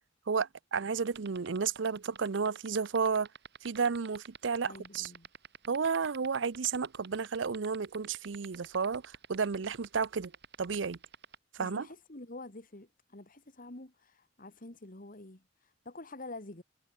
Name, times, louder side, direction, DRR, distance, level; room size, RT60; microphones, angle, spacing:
voice 1, 0.3-3.3 3.6-5.1 5.7-10.3 10.6-11.0 11.5-11.9, right 5 dB, 80° right, 0.6 m, -32 dB
sound 1, 1.0-11.4, right 6 dB, 65° right, 7.6 m, -47 dB
voice 2, 4.6-5.3 11.6-16.6, left 2 dB, 50° left, 2.4 m, -48 dB
head